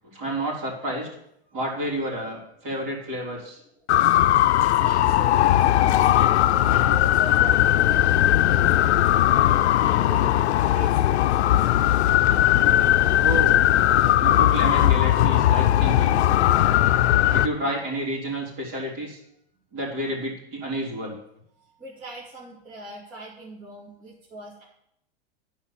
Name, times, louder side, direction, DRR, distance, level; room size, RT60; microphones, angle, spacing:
voice 1, 0.1-1.1 1.5-3.6 13.2-13.6 14.2-16.2 17.0-19.2 19.7-21.2, right 1 dB, 45° right, -2 dB, 3.8 m, -30 dB
sound 1, 3.9-17.5, left 13 dB, 85° left, 0.5 m, -19 dB
voice 2, 4.6-11.9 21.6-24.6, right 2 dB, 25° right, -6 dB, 2.4 m, -41 dB
11.0 x 5.0 x 7.2 m, 0.76 s
supercardioid pair, 140°, 33 cm